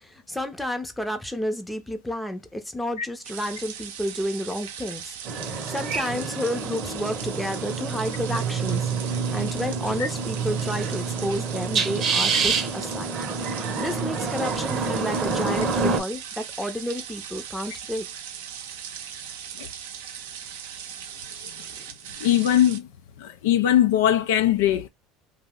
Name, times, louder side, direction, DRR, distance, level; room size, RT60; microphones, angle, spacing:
voice 1, 0.0-13.1 13.5-18.1 21.7-21.8, equal, 5° left, 0.6 m, -31 dB
sound 1, 3.2-22.8, right 8 dB, 90° right, 0.5 m, -39 dB
sound 2, 5.3-16.0, right 5 dB, 40° right, 0.7 m, -27 dB
voice 2, 22.2-22.9 23.2-24.9, left 11 dB, 85° left, 0.4 m, -21 dB
2.7 x 2.0 x 3.6 m
supercardioid pair, 105°, 0 cm